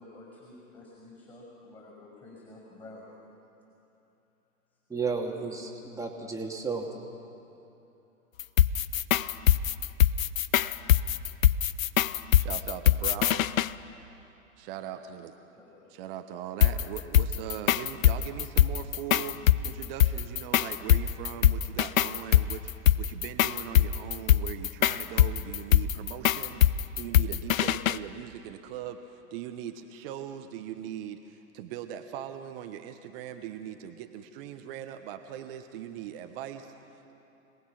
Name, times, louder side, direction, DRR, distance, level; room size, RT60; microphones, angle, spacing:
voice 1, 0.0-3.1 15.5-16.0, left 2 dB, 15° left, -4 dB, 5.9 m, -50 dB
voice 2, 4.9-6.9, right 4 dB, 5° right, 0 dB, 2.3 m, -33 dB
sound 1, 8.4-13.7 16.6-28.0, left 12 dB, 70° left, 0.6 m, -23 dB
voice 3, 12.4-13.5 14.6-15.4 15.9-19.4 19.6-22.7 23.0-26.6 27.0-37.2, right 10 dB, 40° right, 7 dB, 1.2 m, -40 dB
26.5 x 19.0 x 6.0 m, 2.9 s
figure-of-eight pair, 110°, 42 cm